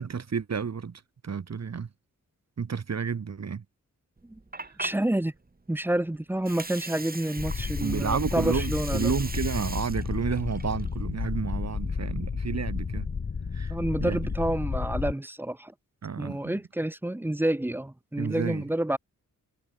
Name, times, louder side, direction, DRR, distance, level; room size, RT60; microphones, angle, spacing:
voice 1, 0.0-1.9 2.6-3.6 7.8-13.1 13.5-13.8 14.0-14.2 16.0-16.6 18.2-18.6, right 6 dB, 50° right, 1.9 m, -31 dB
Water, 4.2-12.1, right 3 dB, 25° right, 5.2 m, -41 dB
voice 2, 4.8-5.3 5.7-9.1 13.7-15.7 16.2-19.0, right 1 dB, 5° right, 0.5 m, -29 dB
sound 1, 7.4-15.1, left 5 dB, 40° left, 1.4 m, -32 dB
wide cardioid pair, 115°, 33 cm